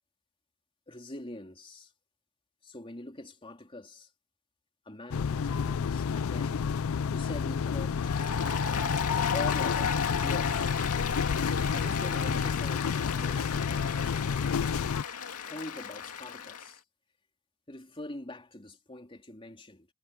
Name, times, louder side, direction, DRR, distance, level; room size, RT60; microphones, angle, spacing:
voice 1, 0.9-1.9 2.6-4.1 4.8-6.7 7.1-8.2 9.3-10.8 11.7-13.9 15.4-16.8 17.7-19.9, left 1 dB, 25° left, 3.4 m, -43 dB
sound 1, 5.1-15.0, left 6 dB, 65° left, 0.4 m, -30 dB
Applause, 8.0-16.7, left 7 dB, 85° left, 2.2 m, -34 dB
head